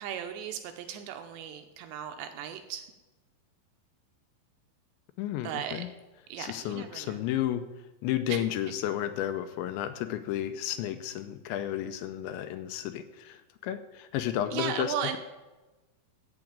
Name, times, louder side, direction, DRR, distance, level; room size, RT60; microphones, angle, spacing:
voice 1, 0.0-2.9 5.4-5.8 6.3-7.2 8.3-8.4 14.5-15.2, right 9 dB, 80° right, 7 dB, 2.7 m, -36 dB
voice 2, 5.2-5.9 6.4-7.6 8.0-15.2, left 11 dB, 85° left, 10 dB, 2.8 m, -32 dB
14.0 x 4.9 x 8.7 m, 1.1 s
omnidirectional pair, 5.5 m